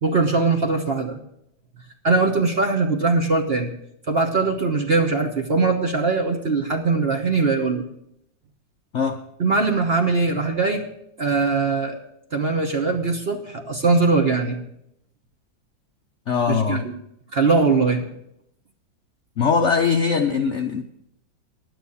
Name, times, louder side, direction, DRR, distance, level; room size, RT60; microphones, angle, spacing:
voice 1, 0.0-1.2 2.0-3.7 4.1-7.8 9.4-10.9 11.2-12.0 12.3-14.6 16.5-16.9 17.3-18.1, right 3 dB, 40° right, 4 dB, 1.0 m, -21 dB
voice 2, 16.3-16.9 19.4-20.8, left 5 dB, 60° left, 5 dB, 0.7 m, -21 dB
11.0 x 9.2 x 7.0 m, 0.76 s
omnidirectional pair, 2.1 m